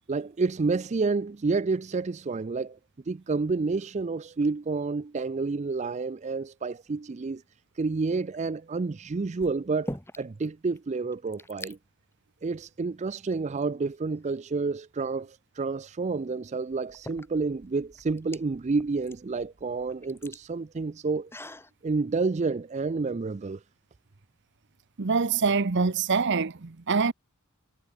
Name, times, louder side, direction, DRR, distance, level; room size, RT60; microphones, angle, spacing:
voice 1, 0.1-2.8 3.1-7.4 7.8-11.8 12.4-21.3 21.8-23.6, right 4 dB, 30° right, 0.4 m, -29 dB
sound 1, 8.2-8.6 9.4-10.5 10.8-10.9 11.1-11.8 12.6-12.7 13.3-14.2 15.9-16.0 16.7-21.7, left 1 dB, 10° left, 3.9 m, -44 dB
voice 2, 25.0-27.1, right 5 dB, 55° right, 0.8 m, -25 dB
head